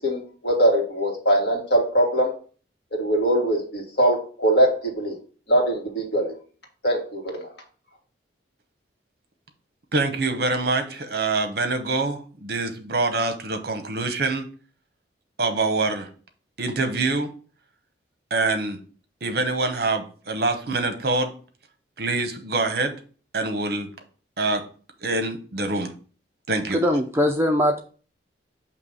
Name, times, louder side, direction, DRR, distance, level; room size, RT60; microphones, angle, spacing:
voice 1, 0.0-2.3 3.0-5.2 5.5-6.3 6.8-7.5, right 1 dB, 60° left, 0 dB, 1.7 m, -22 dB
voice 2, 9.9-14.4 15.4-16.1 16.6-17.3 18.3-18.8 19.2-21.3 22.0-22.9 23.3-23.9 24.4-24.6 25.0-25.9 26.5-26.8, right 3 dB, 55° right, 7 dB, 0.8 m, -25 dB
voice 3, 26.7-27.8, left 1 dB, 15° right, 4 dB, 0.4 m, -21 dB
6.6 x 2.9 x 5.4 m, 0.40 s
head